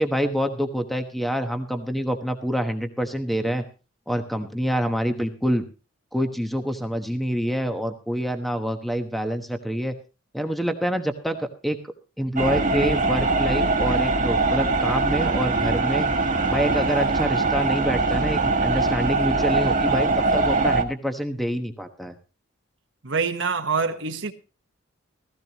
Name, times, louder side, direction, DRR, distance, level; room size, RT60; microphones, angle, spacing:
voice 1, 0.0-3.6 4.1-5.6 6.1-9.9 10.3-11.8 12.2-16.1 16.5-22.1, equal, ahead, 1.1 m, -26 dB
sound 1, 12.4-20.8, right 3 dB, 40° right, 1.5 m, -22 dB
voice 2, 23.0-24.3, right 5 dB, 60° right, 1.3 m, -25 dB
16.0 x 15.5 x 3.0 m
head